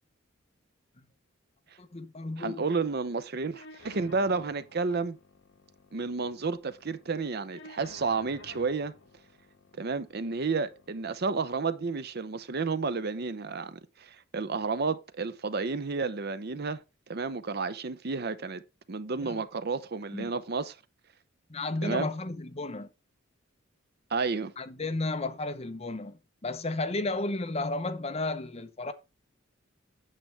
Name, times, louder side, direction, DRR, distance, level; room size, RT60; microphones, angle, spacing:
voice 1, 1.8-2.6 19.2-19.4 20.1-20.3 21.5-22.9 24.6-26.2 26.4-28.9, left 2 dB, 30° left, 0.8 m, -33 dB
voice 2, 2.4-5.2 5.9-8.9 9.8-16.8 17.1-18.6 18.9-20.8 21.8-22.1 24.1-24.5, right 4 dB, 50° right, 0.6 m, -31 dB
sound 1, 3.5-11.5, left 2 dB, 60° left, 1.4 m, -54 dB
9.0 x 7.6 x 3.3 m
head